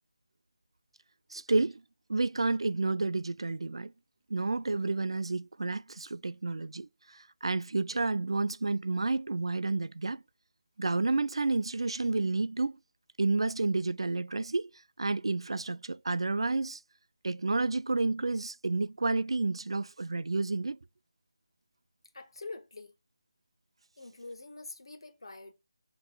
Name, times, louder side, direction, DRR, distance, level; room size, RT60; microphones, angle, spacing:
voice 1, 1.3-1.8 2.1-3.9 4.3-10.2 10.8-12.8 13.2-14.7 15.0-16.8 17.2-20.8, right 3 dB, 75° right, 0.3 m, -30 dB
voice 2, 22.1-22.9 24.0-25.5, left 3 dB, 70° left, 0.9 m, -45 dB
5.8 x 3.0 x 2.3 m
figure-of-eight pair, 160°, 3 cm